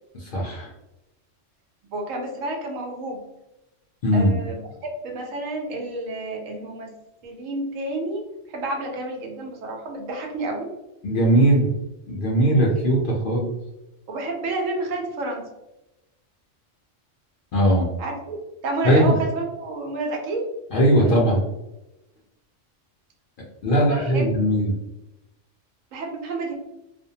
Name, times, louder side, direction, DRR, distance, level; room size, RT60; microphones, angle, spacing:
voice 1, 0.1-0.7 4.0-4.4 11.0-11.7 12.1-13.5 17.5-17.9 18.8-19.1 20.7-21.4 23.6-24.7, right 1 dB, 60° left, -3 dB, 0.5 m, -19 dB
voice 2, 1.9-3.2 4.1-6.9 7.2-8.2 8.5-10.7 14.1-15.5 18.0-18.4 18.6-20.5 21.0-21.2 23.7-24.3 25.9-26.5, right 2 dB, 85° right, 1 dB, 1.0 m, -30 dB
2.5 x 2.1 x 2.7 m, 0.94 s
omnidirectional pair, 1.3 m